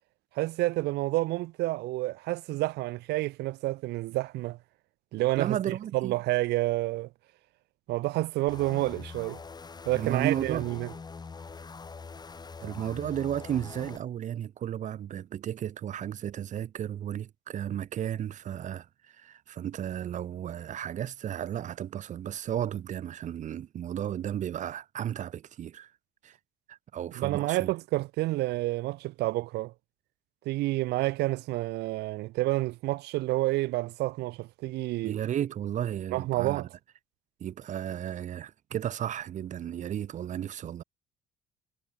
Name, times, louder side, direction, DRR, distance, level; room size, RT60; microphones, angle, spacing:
voice 1, 0.4-4.6 5.1-5.6 5.9-7.1 7.9-9.4 9.9-10.9 27.1-29.7 30.5-35.2 36.1-36.7, right 19 dB, 80° right, 0.6 m, -29 dB
voice 2, 5.4-6.2 9.9-10.7 12.6-25.9 26.2-26.4 26.7-27.7 35.0-36.7 37.4-40.8, right 10 dB, 45° right, 0.8 m, -34 dB
sound 1, 8.5-14.0, left 4 dB, 25° left, 1.7 m, -44 dB
cardioid pair, 110°, 17 cm